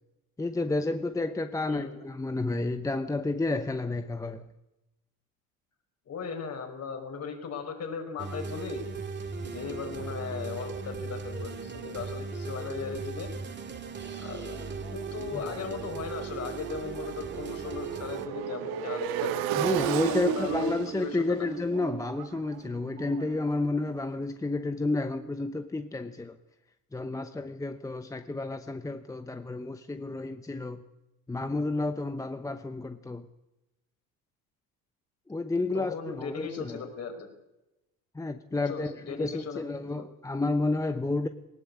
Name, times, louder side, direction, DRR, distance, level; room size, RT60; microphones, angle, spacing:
voice 1, 0.4-4.5 15.3-15.4 19.5-26.4 26.9-30.8 31.3-33.3 35.3-36.8 38.1-41.3, left 2 dB, 10° left, 0.8 m, -31 dB
voice 2, 1.7-2.0 6.1-8.8 9.4-13.3 14.2-14.6 14.9-19.3 20.1-21.5 35.7-37.3 38.7-39.6 39.9-40.0, left 6 dB, 45° left, 5.2 m, -37 dB
sound 1, 8.2-18.3, right 4 dB, 30° right, 2.3 m, -38 dB
Motorcycle, 14.1-24.0, right 10 dB, 80° right, 1.8 m, -35 dB
19.0 x 18.5 x 8.5 m
cardioid pair, 115°, 36 cm